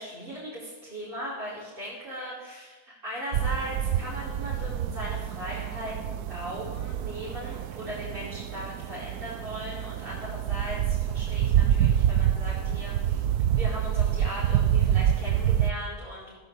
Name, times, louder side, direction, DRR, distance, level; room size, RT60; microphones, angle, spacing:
voice 1, 0.0-13.2 13.5-16.3, equal, 35° right, -9 dB, 4.8 m, -38 dB
sound 1, 3.3-15.7, right 10 dB, 80° right, 1.2 m, -27 dB
16.0 x 10.0 x 8.2 m, 1.3 s
omnidirectional pair, 1.6 m